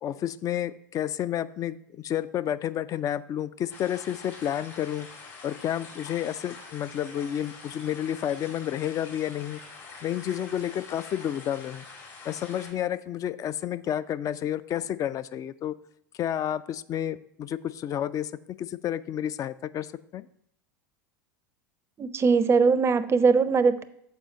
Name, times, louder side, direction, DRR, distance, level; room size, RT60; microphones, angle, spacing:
voice 1, 0.0-5.1 5.4-9.6 10.0-11.8 12.3-15.8 16.2-18.3 18.6-20.3, left 10 dB, 30° left, 16 dB, 0.3 m, -30 dB
sound 1, 3.7-12.7, left 4 dB, 55° left, 2.0 m, -45 dB
voice 2, 22.0-23.8, right 5 dB, 25° right, 13 dB, 0.5 m, -21 dB
7.2 x 4.7 x 5.1 m, 0.72 s
hypercardioid pair, 85°, 11 cm